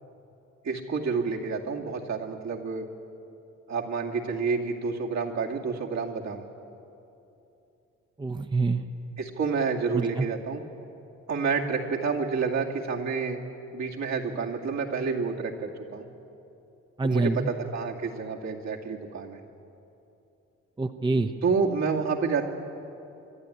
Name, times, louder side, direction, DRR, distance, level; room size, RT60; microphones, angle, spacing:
voice 1, 0.6-2.9 3.7-6.4 9.2-10.6 11.3-13.4 13.7-16.1 17.0-19.4 21.4-22.4, right 5 dB, 65° right, 0 dB, 2.4 m, -29 dB
voice 2, 8.2-8.8 9.9-10.3 17.0-17.5 20.8-21.3, right 3 dB, 15° right, 7 dB, 0.8 m, -26 dB
25.5 x 11.5 x 9.9 m, 2.8 s
cardioid pair, 90°, 30 cm